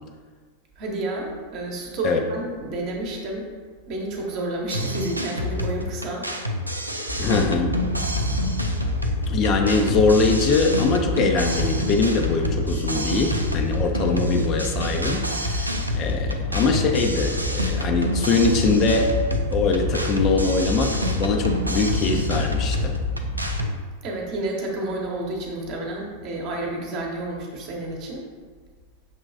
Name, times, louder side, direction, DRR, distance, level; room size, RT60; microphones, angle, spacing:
voice 1, 0.8-3.5 3.9-6.3 24.0-28.3, right 2 dB, 40° right, 0 dB, 0.9 m, -30 dB
sound 1, 4.7-23.7, equal, 85° right, 0.3 m, -29 dB
Wind / Boat Water vehicle, 7.1-23.6, left 1 dB, 70° left, 1.0 m, -28 dB
voice 2, 7.2-7.8 9.3-22.9, left 4 dB, 35° left, 3 dB, 0.4 m, -22 dB
6.2 x 3.0 x 2.5 m, 1.5 s
figure-of-eight pair, 90°, 0 cm